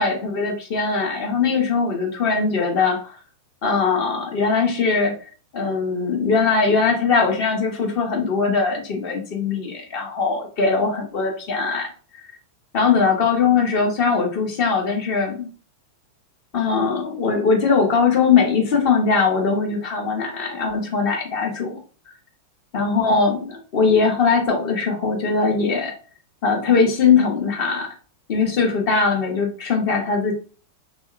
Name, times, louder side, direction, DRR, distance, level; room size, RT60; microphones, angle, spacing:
voice 1, 0.0-3.2 3.6-5.1 5.5-11.9 12.7-15.5 16.5-21.8 22.7-25.9 26.4-27.9 28.3-30.3, left 5 dB, 45° left, 1 dB, 0.9 m, -20 dB
3.0 x 2.7 x 2.5 m, 0.38 s
figure-of-eight pair, 90°, 0 cm